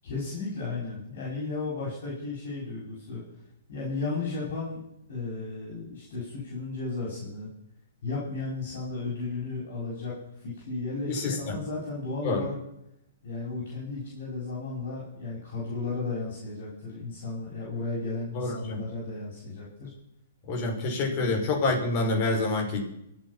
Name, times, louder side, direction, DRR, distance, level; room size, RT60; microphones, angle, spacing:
voice 1, 0.0-3.2 3.7-4.8 5.1-7.5 8.0-10.1 10.4-12.6 13.2-19.9 21.1-21.4, left 3 dB, 60° left, -5 dB, 7.1 m, -34 dB
voice 2, 11.1-11.6 12.2-12.4 18.3-18.8 20.5-22.8, left 2 dB, 40° left, 1 dB, 5.6 m, -27 dB
24.5 x 8.4 x 5.8 m, 0.80 s
hypercardioid pair, 125°, 0 cm